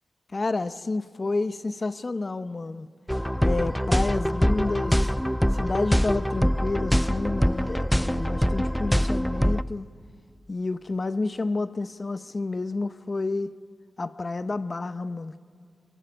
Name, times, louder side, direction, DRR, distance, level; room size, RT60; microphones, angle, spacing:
voice 1, 0.3-2.9 3.4-5.0 5.5-9.9 10.5-13.5 14.0-15.4, left 3 dB, 45° left, 0.6 m, -30 dB
sound 1, 3.1-9.6, equal, 5° left, 0.4 m, -24 dB
24.0 x 19.0 x 6.2 m
cardioid pair, 55°, 0 cm